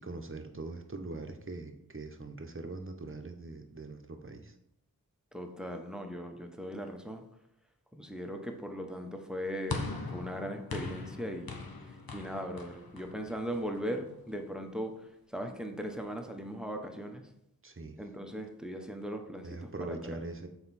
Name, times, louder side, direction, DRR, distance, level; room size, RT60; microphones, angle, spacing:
voice 1, 0.0-4.5 17.6-18.0 19.4-20.5, right 2 dB, 35° right, 5 dB, 0.9 m, -42 dB
voice 2, 5.3-7.2 7.9-11.6 12.1-15.0 15.3-17.2 18.0-20.0, equal, ahead, 4 dB, 0.8 m, -38 dB
sound 1, 9.7-14.1, left 4 dB, 75° left, 0.9 m, -41 dB
6.6 x 4.4 x 4.1 m, 0.79 s
wide cardioid pair, 45°, 36 cm